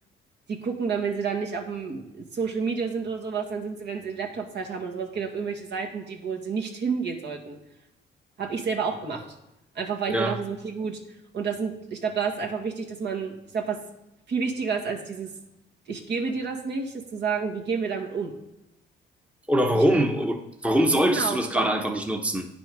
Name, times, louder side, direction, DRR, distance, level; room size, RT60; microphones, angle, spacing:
voice 1, 0.5-7.6 8.4-9.2 9.8-13.8 14.3-15.3 15.9-18.3 19.7-19.8 21.0-21.7, right 5 dB, 60° right, 1 dB, 1.7 m, -30 dB
voice 2, 19.5-22.5, right 1 dB, 5° right, 4 dB, 1.0 m, -23 dB
9.7 x 6.1 x 5.2 m, 0.91 s
cardioid pair, 90°, 20 cm